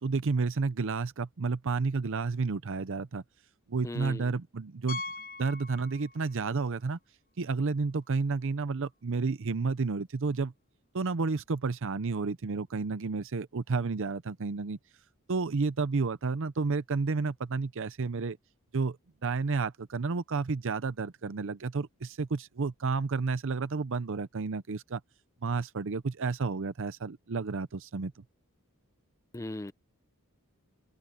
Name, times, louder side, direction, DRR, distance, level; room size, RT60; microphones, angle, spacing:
voice 1, 0.0-3.2 3.7-5.0 5.4-7.0 7.4-10.5 10.9-14.8 15.3-18.4 18.7-19.0 19.2-25.0 25.4-28.1, right 4 dB, 60° right, 0.6 m, -31 dB
voice 2, 3.8-4.2 29.3-29.7, left 1 dB, 15° left, 0.5 m, -37 dB
Piano, 4.9-6.5 6.8-6.9 7.5-7.6 7.8-7.9 10.0-10.1, left 3 dB, 40° left, 1.2 m, -41 dB
open air
head